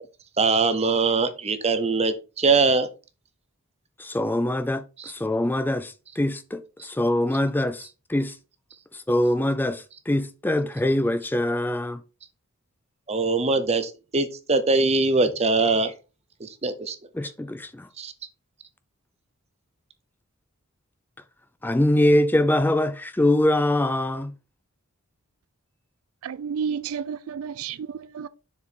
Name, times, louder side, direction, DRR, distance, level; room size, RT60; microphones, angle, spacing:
voice 1, 0.4-2.9 13.1-15.9 16.4-17.0 18.0-18.1, right 3 dB, 30° right, 0.8 m, -22 dB
voice 2, 4.0-8.4 8.9-12.0 17.1-17.9 21.6-24.3, left 1 dB, 10° left, 0.4 m, -23 dB
voice 3, 26.2-28.3, right 6 dB, 70° right, 0.4 m, -31 dB
6.9 x 4.7 x 4.4 m
head